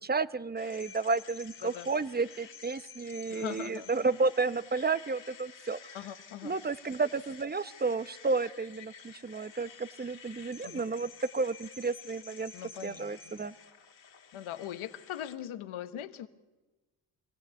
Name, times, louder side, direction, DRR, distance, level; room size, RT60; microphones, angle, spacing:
voice 1, 0.0-6.0 6.4-12.5 12.8-13.5, right 4 dB, 20° right, 15 dB, 0.8 m, -32 dB
sound 1, 0.6-15.4, left 6 dB, 60° left, 2.5 m, -51 dB
voice 2, 3.3-3.9 5.9-6.6 10.6-10.9 12.5-13.5 14.3-16.3, left 10 dB, 80° left, 9 dB, 1.2 m, -41 dB
23.5 x 16.5 x 8.3 m, 1.1 s
cardioid pair, 65°, 48 cm